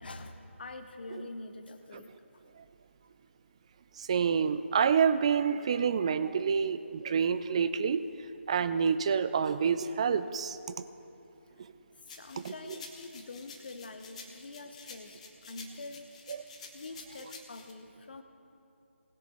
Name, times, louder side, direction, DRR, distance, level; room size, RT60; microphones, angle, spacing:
voice 1, 0.0-2.4 12.0-16.1 16.7-18.2, left 2 dB, 45° left, 8 dB, 1.0 m, -45 dB
voice 2, 4.0-8.0 8.5-10.6 12.4-12.5 16.3-16.4, right 6 dB, 25° right, 12 dB, 0.4 m, -27 dB
sound 1, 12.1-17.7, left 4 dB, 30° left, 1.2 m, -50 dB
19.5 x 6.9 x 4.3 m, 2.7 s
figure-of-eight pair, 155°, 7 cm